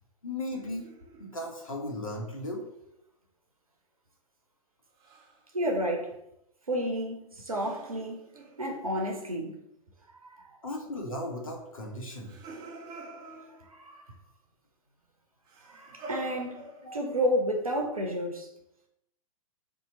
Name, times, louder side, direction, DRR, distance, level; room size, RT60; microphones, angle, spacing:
voice 1, 0.2-0.9 1.2-2.6 10.6-12.3 16.8-17.0, left 1 dB, 70° left, 0.9 m, -36 dB
sound 1, 0.5-2.0 5.0-5.4 7.5-9.2 12.1-14.0 15.5-17.2, right 1 dB, 20° right, 0.5 m, -47 dB
voice 2, 5.5-6.1 6.7-8.2 8.6-9.6 10.2-10.6 13.7-14.0 15.7-16.7 16.9-18.5, equal, 85° right, 0.6 m, -31 dB
2.8 x 2.4 x 4.0 m
figure-of-eight pair, 110°, 18 cm